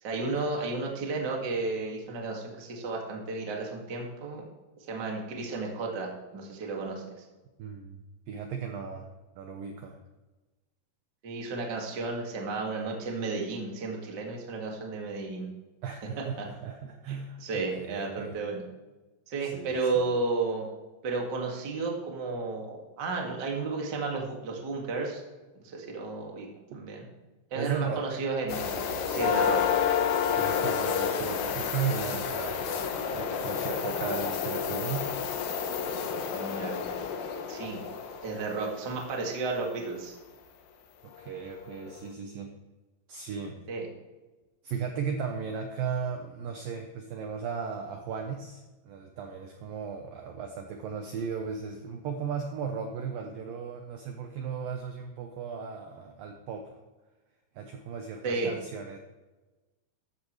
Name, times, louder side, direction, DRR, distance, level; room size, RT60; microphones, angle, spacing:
voice 1, 0.0-4.4 4.9-7.0 11.2-15.5 16.4-16.5 17.1-18.6 19.3-20.7 21.0-25.2 25.6-26.5 26.7-27.0 27.5-29.6 36.3-36.7 37.5-37.8 38.2-40.1 43.7-43.9 58.2-58.5, right 3 dB, 45° right, 0 dB, 1.4 m, -33 dB
voice 2, 7.6-8.0 8.3-9.1 9.4-10.0 15.8-18.4 19.4-20.0 26.7-26.8 27.5-28.1 30.4-32.7 33.1-35.1 41.2-42.5 43.1-43.6 44.6-56.7 57.6-59.0, right 6 dB, 85° right, 4 dB, 2.0 m, -36 dB
sound 1, 28.5-39.1 41.1-41.2 41.8-41.9, left 7 dB, 70° left, 2.3 m, -30 dB
14.0 x 12.0 x 3.2 m, 1.2 s
omnidirectional pair, 5.3 m